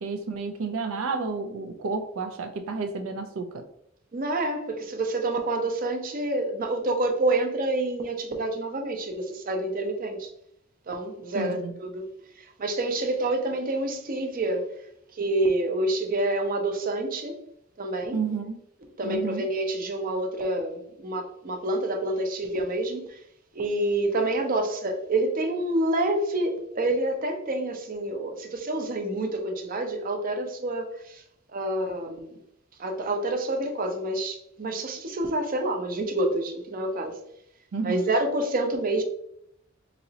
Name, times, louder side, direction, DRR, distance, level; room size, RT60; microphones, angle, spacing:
voice 1, 0.0-3.6 11.3-11.7 18.1-18.6 19.0-19.4 37.7-38.1, right 4 dB, 85° right, 0.4 m, -31 dB
voice 2, 4.1-10.3 10.9-12.1 12.4-14.7 15.1-17.4 17.8-18.2 19.0-23.2 23.5-31.2 31.5-32.4 32.8-37.1 37.8-39.0, right 2 dB, 45° right, 0.6 m, -28 dB
4.0 x 2.9 x 2.7 m
head